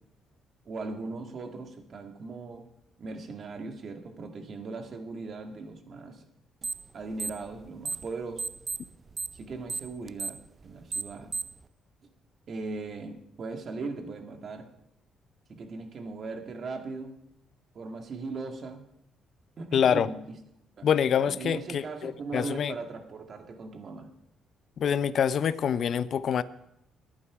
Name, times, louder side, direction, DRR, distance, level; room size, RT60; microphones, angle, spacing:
voice 1, 0.6-2.7 3.0-6.2 6.9-8.4 9.3-11.3 12.5-14.7 15.5-17.1 17.7-18.8 19.6-20.4 20.8-20.9 21.4-24.1, right 3 dB, 45° right, 5 dB, 1.8 m, -39 dB
sound 1, 6.6-6.9 7.1-8.1 8.4-11.6, right 3 dB, 25° right, 0.5 m, -33 dB
voice 2, 19.7-20.1 20.8-22.7 24.8-26.4, left 8 dB, 50° left, 15 dB, 0.6 m, -26 dB
22.5 x 8.7 x 4.8 m, 0.79 s
cardioid pair, 135°, 0 cm